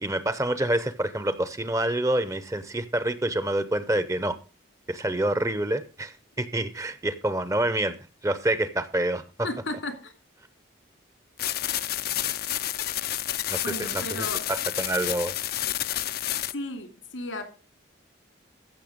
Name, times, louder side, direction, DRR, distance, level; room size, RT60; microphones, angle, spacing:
voice 1, 0.0-4.4 4.9-7.9 8.2-9.5 13.5-15.3, right 1 dB, 15° right, 14 dB, 0.7 m, -27 dB
voice 2, 9.4-10.1 13.6-14.4 16.5-17.4, left 2 dB, 80° left, 7 dB, 2.6 m, -34 dB
sound 1, 11.4-16.5, left 13 dB, 50° left, 0.5 m, -30 dB
15.0 x 6.6 x 5.1 m, 0.34 s
head